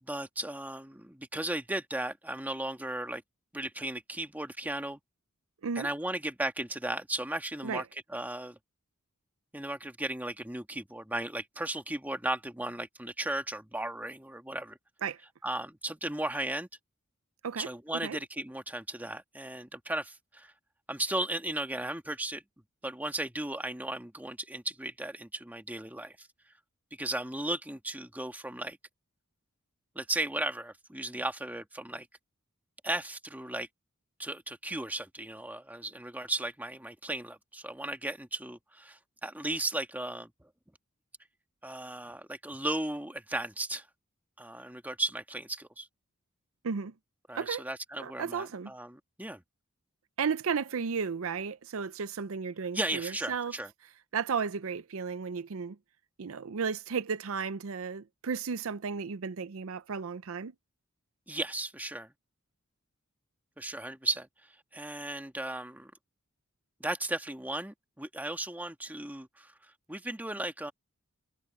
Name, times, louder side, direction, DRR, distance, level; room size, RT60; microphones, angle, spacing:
voice 1, 0.0-3.2 3.5-5.0 5.8-8.6 9.5-14.8 15.4-16.7 17.6-20.5 20.9-22.4 22.8-26.3 27.0-28.8 30.0-32.1 32.8-33.7 34.2-40.5 41.6-43.9 44.4-45.9 47.3-49.4 52.7-53.7 61.3-62.1 63.6-64.3 64.7-65.9 66.8-70.7, right 1 dB, 10° right, 1.9 m, -36 dB
voice 2, 48.0-48.7 50.2-53.5 54.1-55.8 56.2-60.5, right 6 dB, 70° right, 0.6 m, -34 dB
head